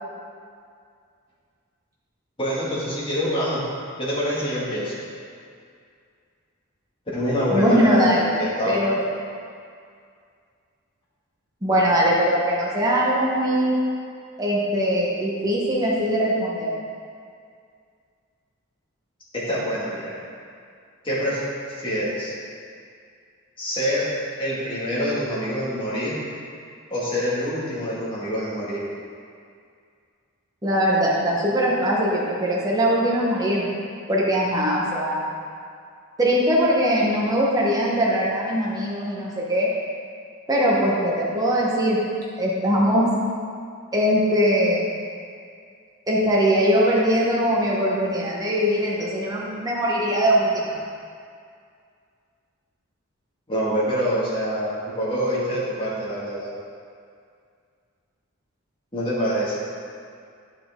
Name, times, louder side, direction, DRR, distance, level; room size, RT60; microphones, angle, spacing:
voice 1, 2.4-3.6 4.0-4.9 7.1-8.7 19.3-20.1 21.0-21.4 21.7-22.3 23.6-24.1 24.4-26.2 26.9-28.8 53.5-56.5 58.9-59.5, equal, 25° left, -8 dB, 2.0 m, -25 dB
voice 2, 7.5-8.3 8.7-8.9 11.6-13.8 14.4-16.8 30.6-33.7 34.1-35.3 36.2-39.7 40.5-42.0 42.4-43.1 43.9-44.8 46.1-50.8, equal, 15° right, -5 dB, 1.0 m, -21 dB
9.3 x 5.8 x 3.7 m, 2.3 s
head